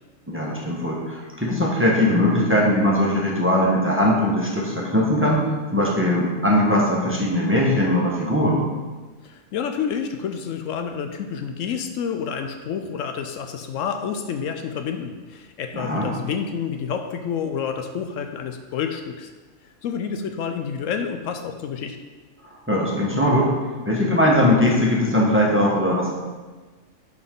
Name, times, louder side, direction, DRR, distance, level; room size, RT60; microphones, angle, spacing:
voice 1, 0.3-8.6 15.7-16.1 22.4-26.1, left 1 dB, 10° right, -4 dB, 1.2 m, -20 dB
voice 2, 9.2-19.3 19.8-22.0, left 7 dB, 75° left, 6 dB, 0.9 m, -29 dB
11.0 x 4.1 x 3.8 m, 1.3 s
omnidirectional pair, 1.4 m